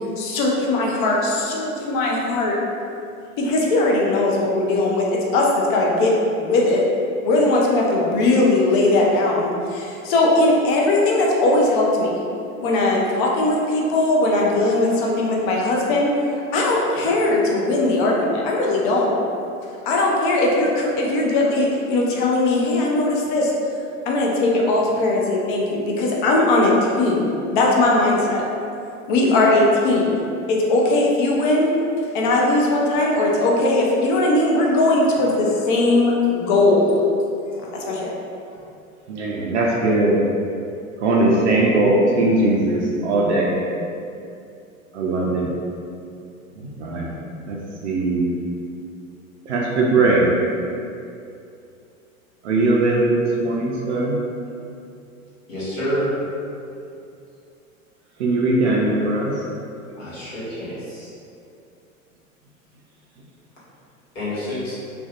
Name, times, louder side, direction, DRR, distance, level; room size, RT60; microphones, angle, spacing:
voice 1, 0.2-2.6 3.4-6.1 6.4-6.8 7.2-12.1 12.6-16.1 16.5-19.1 19.9-23.5 24.1-28.4 29.1-30.2 30.5-31.7 32.1-37.0 37.7-38.1, left 2 dB, 40° left, -2 dB, 0.5 m, -19 dB
voice 2, 39.1-40.2 41.0-43.6 44.9-45.5 46.6-47.2 47.5-48.4 49.5-50.3 52.4-54.2 58.2-59.4, right 2 dB, 60° right, -3 dB, 0.5 m, -20 dB
voice 3, 55.5-56.1 59.9-61.1 64.1-64.7, equal, 60° left, -10 dB, 1.2 m, -28 dB
2.5 x 2.2 x 2.3 m, 2.6 s
figure-of-eight pair, 90°, 41 cm